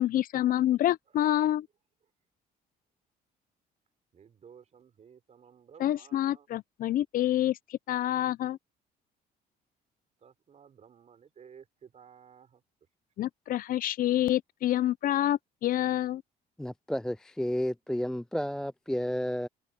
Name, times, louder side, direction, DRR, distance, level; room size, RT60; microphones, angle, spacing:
voice 1, 0.0-1.7 5.8-8.6 13.2-16.2, left 13 dB, 55° left, 0.5 m, -27 dB
voice 2, 4.1-6.5 10.2-12.6, right 7 dB, 40° right, 3.7 m, -55 dB
voice 3, 16.6-19.5, equal, 5° left, 0.3 m, -31 dB
cardioid pair, 110°, 17 cm